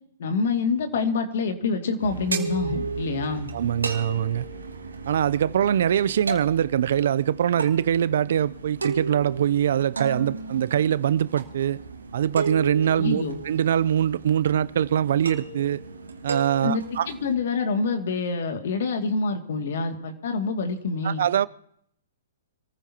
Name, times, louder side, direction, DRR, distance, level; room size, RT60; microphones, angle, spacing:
voice 1, 0.2-3.5 13.0-13.4 16.6-21.2, left 4 dB, 65° left, 2.3 m, -26 dB
sound 1, 2.0-17.3, right 4 dB, 90° right, 2.3 m, -34 dB
voice 2, 3.5-4.4 5.1-11.8 12.1-15.8 16.2-17.1 21.0-21.5, right 9 dB, 65° right, 0.5 m, -23 dB
26.5 x 15.0 x 2.9 m
hypercardioid pair, 125°, 0 cm